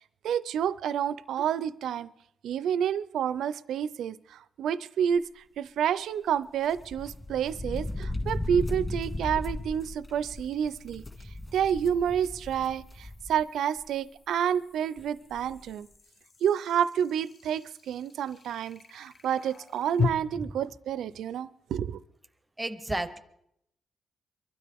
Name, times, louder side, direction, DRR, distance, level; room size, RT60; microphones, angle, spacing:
voice 1, 0.2-2.1 2.4-11.0 11.5-15.9 16.4-22.0, right 9 dB, 80° right, 17 dB, 0.4 m, -29 dB
sound 1, 6.4-6.5 9.9-20.1, left 5 dB, 40° left, 0.8 m, -40 dB
sound 2, 6.7-13.4 13.8-13.9 15.0-15.1 15.3-15.6, left 2 dB, 20° left, 2.1 m, -36 dB
voice 2, 22.6-23.2, right 1 dB, 10° right, 11 dB, 0.7 m, -32 dB
24.5 x 12.5 x 3.5 m, 0.77 s
wide cardioid pair, 160°, 0 cm